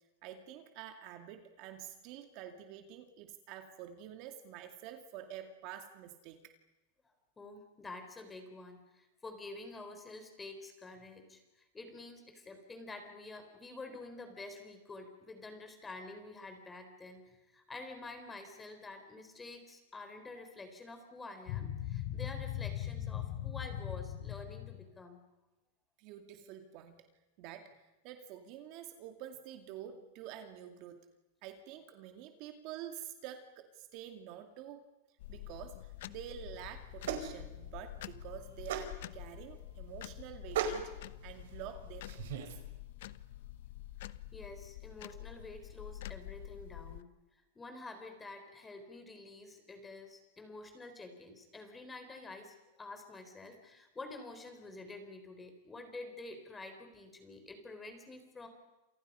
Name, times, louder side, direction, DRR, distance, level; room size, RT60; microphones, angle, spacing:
voice 1, 0.2-6.5 26.0-27.1 27.4-31.1 31.4-34.9 35.3-40.9 41.2-42.5, right 10 dB, 40° right, 6 dB, 2.3 m, -48 dB
voice 2, 7.4-25.2 44.3-58.5, left 2 dB, 10° left, 6 dB, 4.3 m, -48 dB
sound 1, 21.5-24.9, left 11 dB, 45° left, 3.6 m, -39 dB
sound 2, 35.2-47.0, left 14 dB, 65° left, 1.0 m, -47 dB
sound 3, 36.4-42.5, right 7 dB, 70° right, 4.7 m, -41 dB
29.0 x 28.0 x 5.6 m, 1.0 s
supercardioid pair, 160°, 0 cm